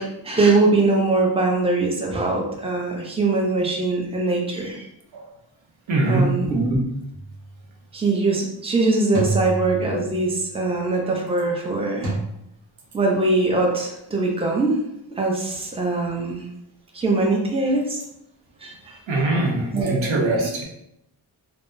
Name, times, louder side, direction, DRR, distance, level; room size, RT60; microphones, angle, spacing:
voice 1, 0.0-4.9 6.0-6.9 7.9-12.1 12.9-14.8 15.2-16.5 16.9-18.0 18.6-19.0 19.7-20.5, right 3 dB, 15° right, -1 dB, 0.6 m, -22 dB
voice 2, 5.9-6.3 19.1-20.6, right 2 dB, 80° right, 1 dB, 0.7 m, -22 dB
sound 1, 7.1-7.5 9.1-10.4 12.0-12.2, right 2 dB, 45° right, 1.3 m, -28 dB
3.4 x 2.0 x 2.6 m, 0.80 s
wide cardioid pair, 55°, 46 cm